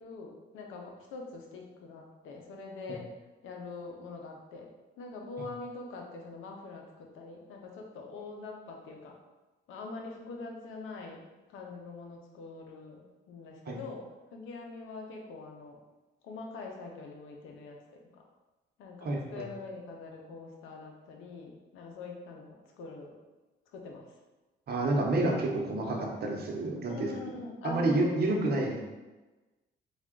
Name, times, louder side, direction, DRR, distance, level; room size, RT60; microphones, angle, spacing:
voice 1, 0.0-3.1 3.4-4.7 5.0-9.2 9.7-11.2 11.5-15.8 16.2-18.2 18.8-23.1 23.7-24.2 26.9-28.5, left 3 dB, 90° left, 1 dB, 0.7 m, -44 dB
voice 2, 19.0-19.5 24.7-27.1 27.6-28.8, right 2 dB, 55° right, 0 dB, 0.9 m, -29 dB
3.5 x 2.4 x 3.7 m, 1.2 s
cardioid pair, 90°, 20 cm